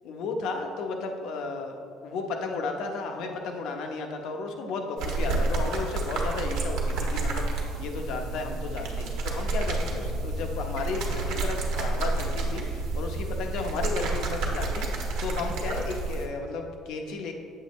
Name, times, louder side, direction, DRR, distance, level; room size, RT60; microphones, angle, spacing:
voice 1, 0.0-17.3, left 3 dB, 65° left, 3 dB, 0.8 m, -34 dB
sound 1, 5.0-16.3, right 3 dB, 85° right, 1.2 m, -29 dB
7.9 x 7.7 x 3.1 m, 2.3 s
cardioid pair, 175°, 0 cm